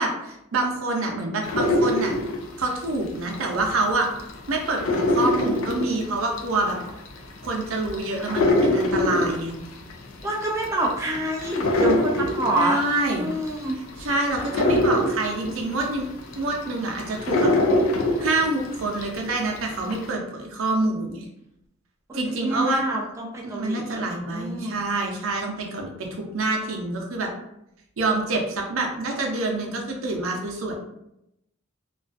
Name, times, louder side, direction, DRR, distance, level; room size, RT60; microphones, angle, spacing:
voice 1, 0.0-2.1 2.6-4.1 4.5-6.8 7.4-9.6 12.5-13.3 14.0-16.1 16.4-17.5 18.2-21.3 22.1-22.8 23.4-25.9 26.2-27.3 28.0-30.7, right 2 dB, 80° right, 1 dB, 0.6 m, -26 dB
sound 1, 1.4-3.7 4.0-19.2 19.6-20.1, left 1 dB, 85° left, 0.4 m, -24 dB
voice 2, 10.2-12.8 13.1-13.7 22.1-24.0 24.3-24.7, right 1 dB, 15° right, -2 dB, 0.3 m, -27 dB
2.4 x 2.3 x 2.4 m, 0.82 s
head